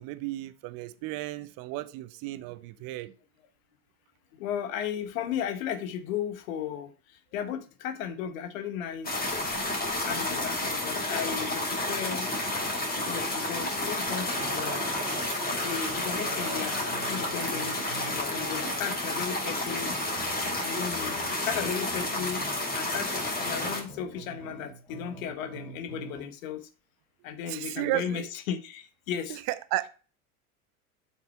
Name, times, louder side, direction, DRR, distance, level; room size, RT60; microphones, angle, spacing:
voice 1, 0.0-3.1 27.5-28.3 29.3-29.9, right 17 dB, 50° right, 0.9 m, -33 dB
voice 2, 4.3-9.3 9.6-9.8 10.1-12.3 12.9-14.8 15.5-17.7 18.0-20.0 20.6-26.7 27.2-29.4, left 9 dB, 65° left, 1.4 m, -35 dB
sound 1, 9.0-23.8, left 2 dB, 20° left, 4.0 m, -31 dB
sound 2, 14.1-20.0, right 3 dB, 15° right, 2.7 m, -43 dB
sound 3, 14.3-26.3, right 3 dB, 5° left, 4.4 m, -47 dB
7.9 x 6.0 x 4.4 m
hypercardioid pair, 85°, 45 cm